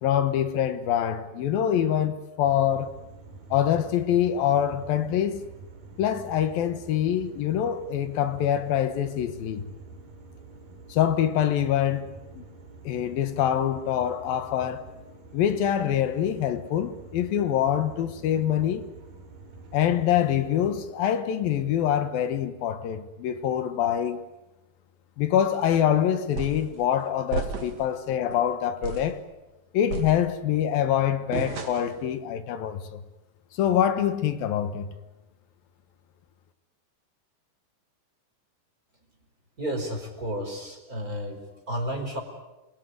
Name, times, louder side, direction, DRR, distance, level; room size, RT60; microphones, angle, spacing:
voice 1, 0.0-2.9 3.5-5.4 6.0-9.7 10.9-12.1 12.3-12.4 12.8-14.9 15.3-18.9 19.7-24.2 25.2-29.2 29.7-33.0 33.5-34.9, left 10 dB, 80° left, 3.2 m, -25 dB
sound 1, 2.4-20.9, right 3 dB, 85° right, 4.6 m, -47 dB
sound 2, 26.4-26.7 27.3-27.9 28.3-28.4 28.8-29.2 29.9-30.6 31.3-32.0, right 4 dB, 50° right, 3.3 m, -33 dB
voice 2, 39.6-41.4 41.7-42.2, equal, 25° right, 5.0 m, -31 dB
28.0 x 22.5 x 9.6 m
omnidirectional pair, 4.1 m